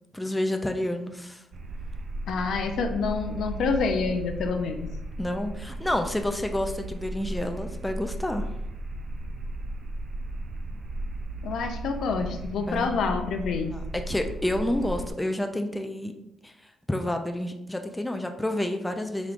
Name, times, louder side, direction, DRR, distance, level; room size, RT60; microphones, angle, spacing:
voice 1, 0.1-1.4 5.2-8.5 12.7-12.9 13.7-16.1 16.4-19.3, left 1 dB, 10° left, 5 dB, 0.4 m, -29 dB
sound 1, 1.5-15.1, right 2 dB, 50° right, 0.4 m, -35 dB
voice 2, 2.3-4.9 11.4-13.7, left 5 dB, 70° left, 5 dB, 0.5 m, -27 dB
5.0 x 3.1 x 2.5 m, 0.87 s
cardioid pair, 90°, 0 cm